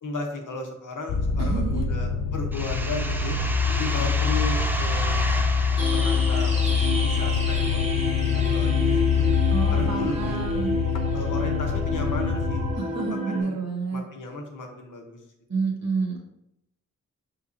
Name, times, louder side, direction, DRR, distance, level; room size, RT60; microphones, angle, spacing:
voice 1, 0.0-3.4 3.7-5.1 5.9-9.3 9.7-10.4 11.1-12.6 12.9-13.5 13.9-15.2, left 2 dB, 85° left, 3 dB, 0.8 m, -35 dB
sound 1, 1.1-12.8, left 5 dB, 60° left, 0.4 m, -25 dB
voice 2, 1.4-1.9 3.6-4.1 9.5-10.8 12.8-14.0 15.5-16.2, right 4 dB, 60° right, 1 dB, 1.0 m, -29 dB
sound 2, 2.5-8.0, equal, 5° right, 0.3 m, -33 dB
sound 3, 5.8-13.4, left 1 dB, 20° right, 0.7 m, -30 dB
5.3 x 3.3 x 2.4 m, 0.82 s
wide cardioid pair, 90°, 31 cm